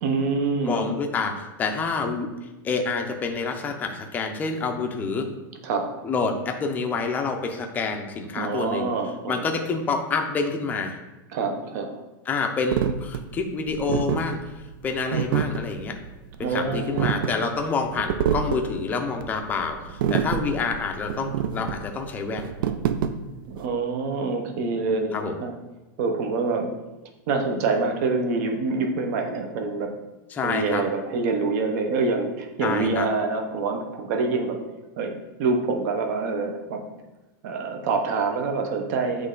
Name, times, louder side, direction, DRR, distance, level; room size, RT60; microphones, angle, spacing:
voice 1, 0.0-0.9 5.6-5.9 8.3-9.4 11.3-12.0 16.4-17.2 22.6-22.7 23.5-25.5 26.0-26.7 27.3-29.9 30.4-34.6 35.0-35.1 35.4-36.8 37.4-39.3, right 4 dB, 50° right, 4 dB, 0.9 m, -26 dB
voice 2, 0.7-2.3 2.6-5.3 6.0-8.9 9.3-11.0 12.3-14.5 14.8-15.9 16.4-22.5 25.1-25.3 30.3-30.8 32.6-33.1, left 4 dB, 15° left, 4 dB, 0.5 m, -27 dB
sound 1, 12.7-23.7, right 8 dB, 75° right, 0.5 m, -27 dB
7.7 x 3.2 x 3.8 m, 1.1 s
supercardioid pair, 160°, 12 cm